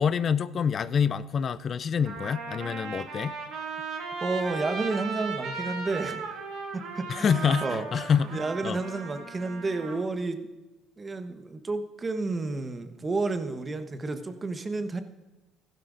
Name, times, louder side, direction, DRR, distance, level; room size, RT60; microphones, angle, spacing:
voice 1, 0.0-3.4 7.1-8.8, left 7 dB, 45° left, 15 dB, 0.4 m, -26 dB
Trumpet, 1.3-1.4 2.0-10.0, right 4 dB, 70° right, 2.0 m, -37 dB
voice 2, 4.2-6.3 6.7-7.8 8.3-10.5 11.0-15.0, right 3 dB, 30° right, 8 dB, 1.2 m, -31 dB
15.0 x 12.0 x 2.6 m, 1.1 s
supercardioid pair, 70°, 0 cm